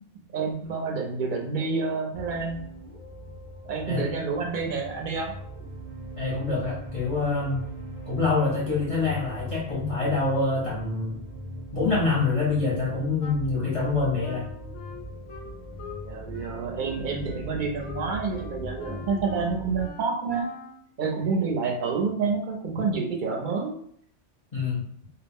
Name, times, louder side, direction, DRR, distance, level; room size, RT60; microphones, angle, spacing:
voice 1, 0.3-2.6 3.6-5.3 16.0-20.5 21.0-23.8, right 4 dB, 55° right, 1 dB, 0.6 m, -28 dB
sound 1, 2.1-19.9, equal, 15° right, 0.8 m, -40 dB
voice 2, 6.2-7.7 8.1-11.2 11.7-14.5 24.5-24.9, left 3 dB, 35° left, -6 dB, 0.6 m, -26 dB
Wind instrument woodwind instrument, 13.2-16.1 16.3-20.8, left 5 dB, 90° left, 1.0 m, -44 dB
2.3 x 2.0 x 3.5 m, 0.66 s
omnidirectional pair, 1.2 m